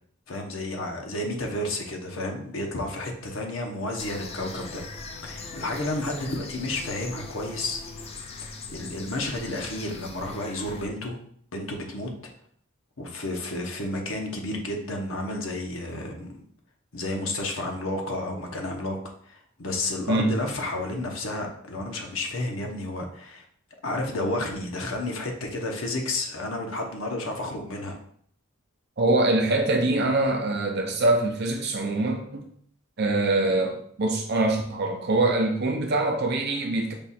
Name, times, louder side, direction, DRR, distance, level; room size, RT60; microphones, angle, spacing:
voice 1, 0.3-4.8 5.2-8.1 8.5-11.2 11.5-12.1 13.0-16.4 16.9-19.0 19.2-23.4 23.8-28.0, left 2 dB, 70° left, 2 dB, 0.9 m, -31 dB
sound 1, 4.0-10.9, left 3 dB, 30° left, 0.4 m, -40 dB
voice 2, 29.0-32.5 33.0-36.9, right 2 dB, 50° right, 2 dB, 0.6 m, -24 dB
5.3 x 2.4 x 4.1 m, 0.63 s
head